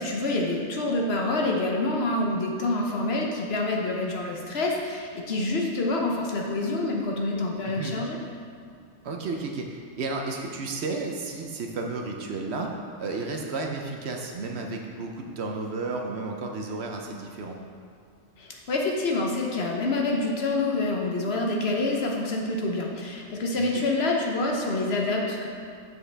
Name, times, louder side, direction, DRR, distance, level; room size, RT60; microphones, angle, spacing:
voice 1, 0.0-8.2 18.4-25.5, left 2 dB, 55° left, 0 dB, 1.0 m, -27 dB
voice 2, 7.6-8.0 9.0-17.6 23.5-23.8, right 3 dB, 65° right, 2 dB, 0.9 m, -33 dB
7.6 x 6.1 x 3.4 m, 2.3 s
omnidirectional pair, 1.3 m